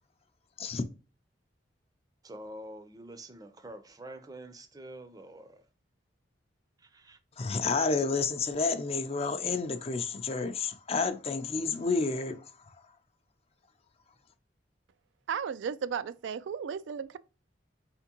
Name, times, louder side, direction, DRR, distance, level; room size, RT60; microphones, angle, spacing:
voice 1, 2.2-5.6 6.9-7.2, right 1 dB, 20° right, 0.5 m, -46 dB
voice 2, 7.4-12.4, left 4 dB, 35° left, 0.5 m, -30 dB
voice 3, 15.3-17.2, right 7 dB, 80° right, 0.3 m, -34 dB
4.4 x 3.5 x 2.9 m
head